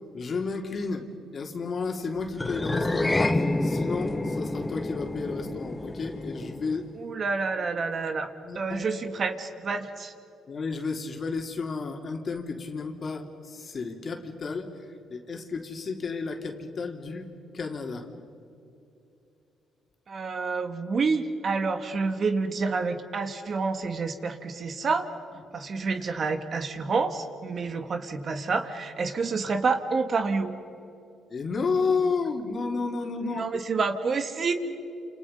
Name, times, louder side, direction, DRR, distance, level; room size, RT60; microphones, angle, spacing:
voice 1, 0.1-1.1 1.3-6.9 8.4-8.9 10.5-17.3 17.5-18.1 31.3-33.5, left 4 dB, 45° left, 3 dB, 3.2 m, -32 dB
sound 1, 2.4-6.9, left 2 dB, 15° left, 1.4 m, -28 dB
voice 2, 7.0-8.3 8.6-10.1 20.1-25.1 25.5-30.5 33.2-34.5, right 4 dB, 50° right, 8 dB, 2.0 m, -28 dB
29.0 x 28.5 x 5.5 m, 2.8 s
cardioid pair, 90°, 0 cm